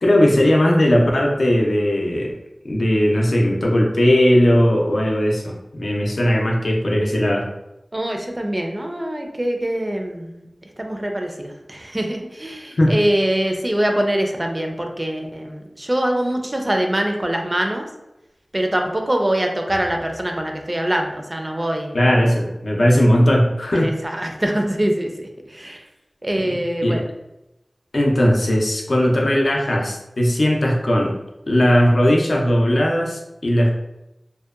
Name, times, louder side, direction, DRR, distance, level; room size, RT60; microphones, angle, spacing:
voice 1, 0.0-2.3 2.7-7.5 12.8-12.9 21.9-23.9 26.8-27.0 27.9-31.2 31.5-33.8, equal, 75° left, -1 dB, 0.4 m, -18 dB
voice 2, 7.9-10.5 10.8-17.8 18.5-22.1 23.7-25.8 26.2-27.0, right 1 dB, 35° right, 3 dB, 0.4 m, -23 dB
2.7 x 2.1 x 2.4 m, 0.93 s
wide cardioid pair, 55°, 0 cm